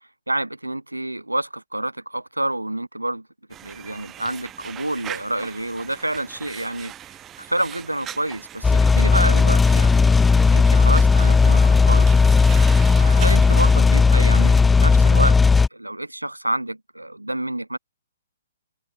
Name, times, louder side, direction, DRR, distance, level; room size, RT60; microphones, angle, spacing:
voice 1, 0.3-3.3 3.6-6.9 7.4-12.2 13.0-15.4 15.7-17.8, right 1 dB, 85° right, 1.8 m, -28 dB
sound 1, 3.5-13.8, right 11 dB, 20° right, 6.2 m, -40 dB
sound 2, 8.6-15.7, left 4 dB, 10° left, 0.3 m, -15 dB
open air
figure-of-eight pair, 125°, 0 cm